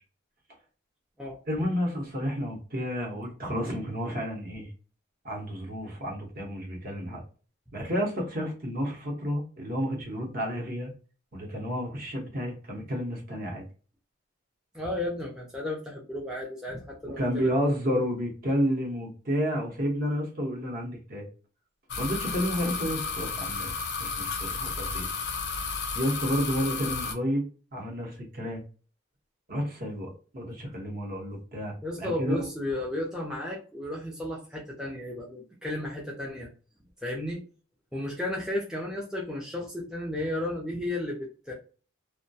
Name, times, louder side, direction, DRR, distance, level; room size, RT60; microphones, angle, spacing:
voice 1, 1.5-4.7 5.2-7.2 7.7-10.9 11.3-13.6 17.0-21.2 22.0-23.7 24.0-25.1 25.9-27.4 27.7-28.6 29.5-32.5, equal, 45° right, 0 dB, 0.8 m, -31 dB
voice 2, 14.7-17.5 31.8-36.5 37.0-37.4 37.9-41.5, left 1 dB, 5° right, -4 dB, 0.4 m, -33 dB
sound 1, 21.9-27.1, left 4 dB, 55° left, 0.5 m, -32 dB
2.3 x 2.1 x 2.6 m, 0.37 s
head